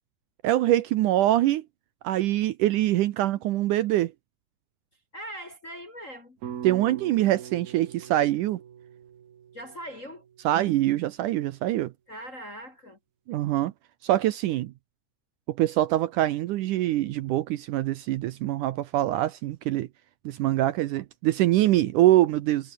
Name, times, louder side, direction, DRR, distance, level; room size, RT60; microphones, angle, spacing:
voice 1, 0.4-1.6 2.0-4.1 6.6-8.6 10.5-11.9 13.3-13.7 14.0-14.7 15.5-19.9 20.3-22.7, right 14 dB, 75° right, 2.1 m, -24 dB
voice 2, 5.1-6.4 9.5-10.2 12.1-13.0, equal, 30° left, 1.5 m, -40 dB
sound 1, 6.4-10.7, right 9 dB, 90° right, 4.4 m, -42 dB
omnidirectional pair, 4.2 m